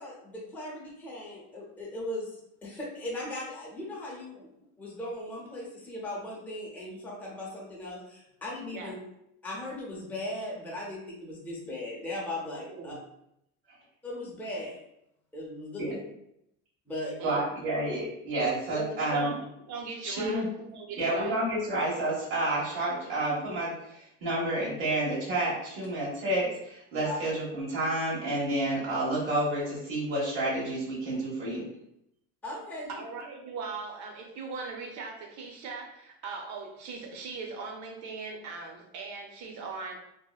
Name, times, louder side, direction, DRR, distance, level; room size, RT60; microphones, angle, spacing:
voice 1, 0.0-4.5 4.8-8.9 9.4-13.0 14.0-14.8 15.3-16.0 16.9-17.2 27.0-27.2 32.4-33.0, left 1 dB, 5° left, -5 dB, 0.5 m, -38 dB
voice 2, 12.7-13.0 17.2-17.4 18.7-19.4 19.7-21.4 32.9-40.0, right 4 dB, 55° right, 2 dB, 0.6 m, -39 dB
voice 3, 17.2-19.3 20.0-20.5 21.0-31.6, right 1 dB, 85° right, -7 dB, 1.0 m, -30 dB
2.7 x 2.0 x 2.2 m, 0.79 s
cardioid pair, 130°, 34 cm